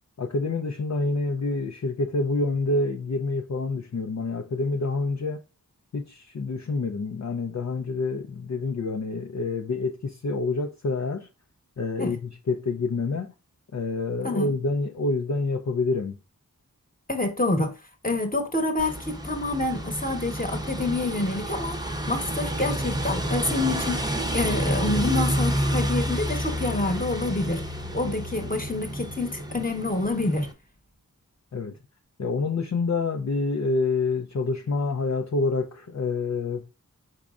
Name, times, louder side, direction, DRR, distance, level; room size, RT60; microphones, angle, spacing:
voice 1, 0.2-5.4 5.9-11.3 11.8-13.3 13.7-16.2 31.5-31.8 32.2-36.7, left 3 dB, 50° left, 0.5 m, -27 dB
voice 2, 17.1-17.7 18.0-21.8 22.1-27.6 27.9-30.5, left 2 dB, 25° left, 1.1 m, -27 dB
sound 1, 18.8-30.5, equal, 10° right, 0.7 m, -29 dB
4.7 x 4.1 x 2.4 m
wide cardioid pair, 40°, 35 cm